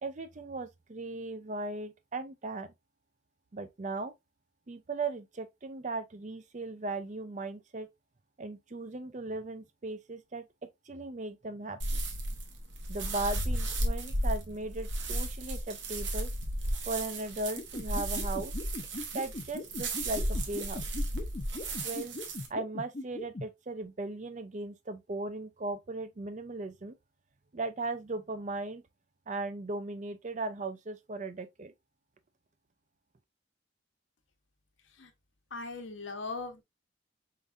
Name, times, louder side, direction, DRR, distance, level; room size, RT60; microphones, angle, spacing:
voice 1, 0.0-2.7 3.5-4.1 4.7-7.9 8.4-12.0 12.9-16.3 16.9-18.5 19.1-20.8 21.8-22.1 22.5-26.9 27.5-28.8 29.3-31.7, right 2 dB, 40° right, 0.5 m, -37 dB
sound 1, 11.8-22.5, right 1 dB, 70° right, 1.2 m, -34 dB
sound 2, 17.6-23.4, left 2 dB, 35° left, 0.6 m, -39 dB
voice 2, 35.5-36.6, left 3 dB, 80° left, 1.1 m, -39 dB
4.6 x 3.8 x 2.5 m
head